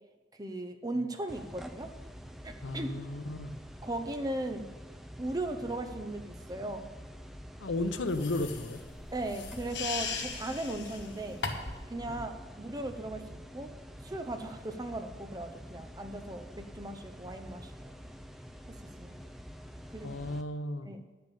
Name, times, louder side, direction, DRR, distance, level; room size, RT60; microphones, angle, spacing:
voice 1, 0.4-1.9 2.4-2.9 3.8-4.7 5.2-6.9 9.1-11.4 11.9-13.7 14.0-18.0 18.7-19.2 19.9-20.4 20.8-21.1, right 1 dB, 20° right, 6 dB, 0.8 m, -37 dB
sound 1, 1.3-20.4, equal, ahead, 0.5 m, -47 dB
voice 2, 2.6-3.6 7.6-8.8 12.1-12.2 20.0-20.9, left 2 dB, 90° left, 10 dB, 0.8 m, -34 dB
sound 2, 8.1-11.9, left 4 dB, 70° left, 1.3 m, -38 dB
10.0 x 6.9 x 8.2 m, 1.2 s
head